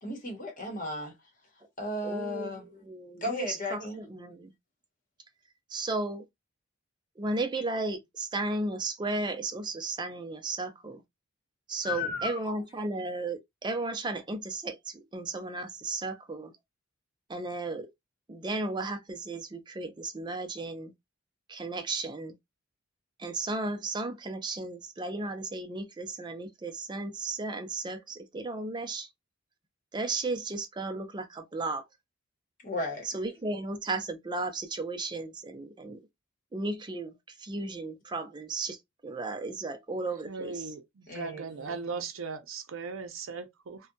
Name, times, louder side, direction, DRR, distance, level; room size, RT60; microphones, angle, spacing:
voice 1, 0.0-1.1 1.8-2.7 3.2-4.0 11.8-12.6 32.6-33.1 41.1-42.0, left 2 dB, 40° left, 0.9 m, -35 dB
voice 2, 2.0-3.8 4.1-4.5 5.7-6.2 7.2-11.0 11.7-14.8 15.1-16.5 17.3-17.9 18.3-20.9 21.5-22.3 23.2-29.1 29.9-31.8 33.1-36.0 36.5-37.1 37.4-38.8 39.0-40.7, right 2 dB, 20° right, 0.4 m, -34 dB
voice 3, 40.3-43.8, right 4 dB, 75° right, 0.5 m, -38 dB
2.7 x 2.1 x 2.5 m
head